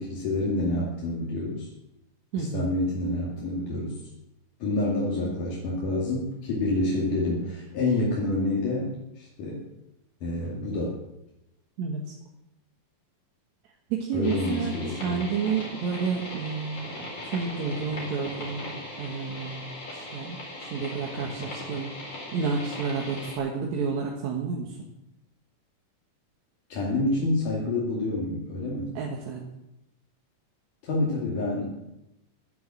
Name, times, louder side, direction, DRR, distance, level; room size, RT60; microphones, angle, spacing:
voice 1, 0.0-1.7 2.4-4.0 4.6-8.9 9.2-9.7 10.2-11.0 14.1-15.3 26.7-28.9 30.8-31.8, left 2 dB, 80° left, -5 dB, 4.0 m, -28 dB
voice 2, 2.3-2.7 11.8-12.1 13.9-16.9 17.3-19.7 19.9-21.9 22.3-24.8 29.0-29.4, right 5 dB, 70° right, 0 dB, 2.7 m, -30 dB
sound 1, 14.2-23.4, left 1 dB, 50° left, 5.4 m, -39 dB
12.0 x 10.5 x 7.5 m, 0.89 s
omnidirectional pair, 3.6 m